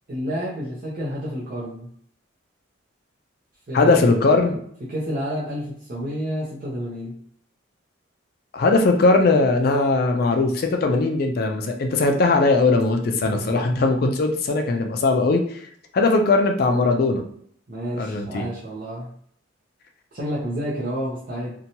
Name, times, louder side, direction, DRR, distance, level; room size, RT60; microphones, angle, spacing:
voice 1, 0.1-1.9 3.7-4.2 4.9-7.1 13.2-13.6 17.7-19.1 20.1-21.5, equal, 45° right, -7 dB, 0.6 m, -30 dB
voice 2, 3.7-4.6 8.5-15.6 15.9-17.2 17.9-18.5, left 3 dB, 50° left, 5 dB, 0.3 m, -19 dB
2.8 x 2.2 x 2.7 m, 0.64 s
head